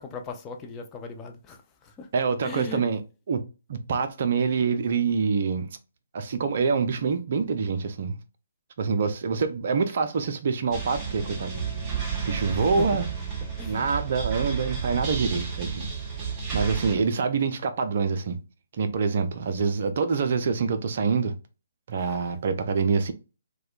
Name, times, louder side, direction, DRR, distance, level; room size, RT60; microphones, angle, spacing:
voice 1, 0.0-1.6 2.0-2.1 2.4-2.8 12.5-12.9 13.6-13.9, left 5 dB, 15° left, 0.4 m, -38 dB
voice 2, 2.1-3.0 3.3-3.4 3.7-5.8 6.1-8.2 8.8-11.6 12.2-13.1 13.7-15.9 16.5-18.4 18.7-21.3 21.9-23.1, right 5 dB, 45° right, 0.4 m, -26 dB
sound 1, 10.7-17.0, right 6 dB, 20° right, 0.8 m, -31 dB
4.2 x 2.2 x 2.4 m
figure-of-eight pair, 135°, 0 cm